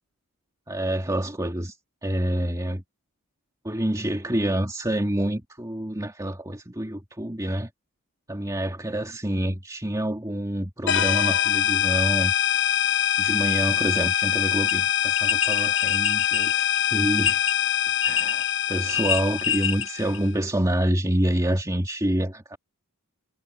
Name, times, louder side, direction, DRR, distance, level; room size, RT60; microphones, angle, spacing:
voice 1, 0.7-1.8 2.0-2.8 3.6-7.7 8.3-12.3 13.2-17.4 18.0-22.6, right 1 dB, 15° right, 2.6 m, -27 dB
sound 1, 10.9-20.3, left 10 dB, 60° left, 7.9 m, -24 dB
sound 2, 14.0-14.1 14.7-14.8 15.2-17.5 18.0-18.5 18.7-19.9 20.1-20.2, left 7 dB, 25° left, 1.1 m, -27 dB
head